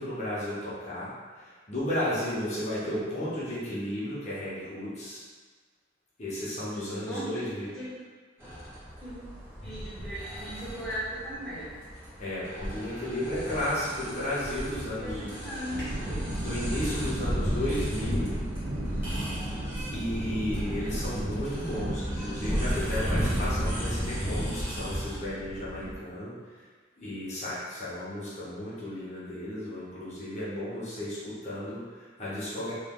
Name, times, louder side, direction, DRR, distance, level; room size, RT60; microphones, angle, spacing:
voice 1, 0.0-5.2 6.2-7.7 12.2-15.3 16.3-18.4 19.9-26.4 27.0-32.7, left 1 dB, 35° left, -10 dB, 1.0 m, -34 dB
voice 2, 7.1-7.4 7.7-7.8 8.4-8.5 9.0-9.1 9.6-11.8 14.8-16.3, equal, 5° left, -11 dB, 1.1 m, -38 dB
sound 1, 8.4-25.2, equal, 10° right, 1.3 m, -35 dB
sound 2, 15.7-25.9, right 1 dB, 75° right, 0.7 m, -34 dB
3.1 x 3.0 x 3.7 m, 1.4 s
head